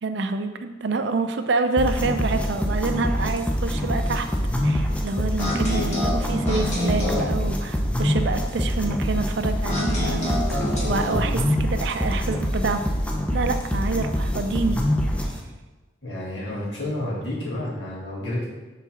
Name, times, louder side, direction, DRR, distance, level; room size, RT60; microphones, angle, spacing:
voice 1, 0.0-4.3 4.6-12.8 13.3-14.8, right 3 dB, 60° right, 7 dB, 0.4 m, -27 dB
sound 1, 1.8-15.4, equal, 5° left, 0.5 m, -25 dB
sound 2, 5.4-7.3 9.6-11.3, left 1 dB, 35° left, 1.6 m, -27 dB
voice 2, 16.0-18.5, left 1 dB, 60° left, -6 dB, 1.9 m, -30 dB
4.7 x 3.9 x 5.7 m, 1.2 s
head